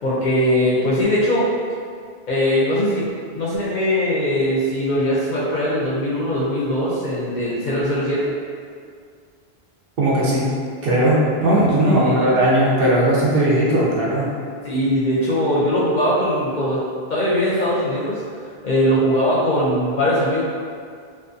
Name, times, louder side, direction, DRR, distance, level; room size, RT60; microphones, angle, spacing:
voice 1, 0.0-1.5 2.3-3.1 3.3-8.3 11.9-12.3 13.3-13.5 14.6-16.8 17.1-18.2 18.6-20.4, equal, 55° left, -8 dB, 0.6 m, -20 dB
voice 2, 10.0-10.5 10.8-14.3, right 1 dB, 65° right, -7 dB, 0.8 m, -18 dB
2.5 x 2.3 x 2.5 m, 2.1 s
omnidirectional pair, 1.1 m